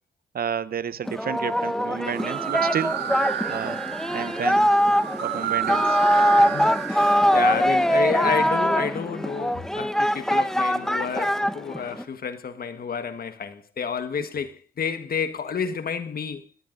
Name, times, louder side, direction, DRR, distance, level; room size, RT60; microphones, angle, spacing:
voice 1, 0.3-3.0 3.5-3.8 4.1-4.7 5.2-6.0, right 8 dB, 60° right, 0.9 m, -30 dB
Singing, 1.1-12.0, equal, 5° left, 1.1 m, -22 dB
sound 1, 2.1-7.9, right 11 dB, 85° right, 1.9 m, -31 dB
voice 2, 6.4-16.5, left 6 dB, 60° left, 1.5 m, -30 dB
24.5 x 19.0 x 2.6 m
supercardioid pair, 55°, 18 cm